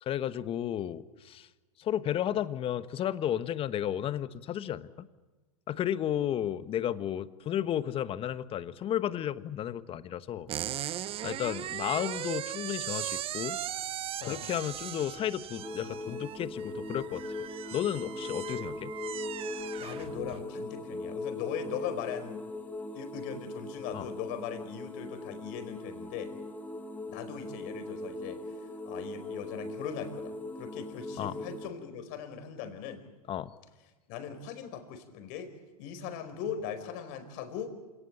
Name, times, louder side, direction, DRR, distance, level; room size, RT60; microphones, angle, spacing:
voice 1, 0.0-1.5 1.8-5.1 5.7-10.5 11.2-13.6 14.2-17.2 17.7-18.9 23.9-24.1 31.2-31.3 33.3-33.5, left 10 dB, 30° left, 14 dB, 1.2 m, -33 dB
sound 1, 10.5-20.5, right 12 dB, 30° right, 0.9 m, -38 dB
sound 2, 15.6-31.7, left 2 dB, 10° left, 2.5 m, -40 dB
voice 2, 19.8-22.4 22.9-26.3 27.1-28.4 28.8-33.0 34.1-35.5 35.8-37.7, left 8 dB, 50° left, 9 dB, 4.8 m, -39 dB
27.5 x 18.5 x 8.6 m, 1.3 s
hypercardioid pair, 115°, 19 cm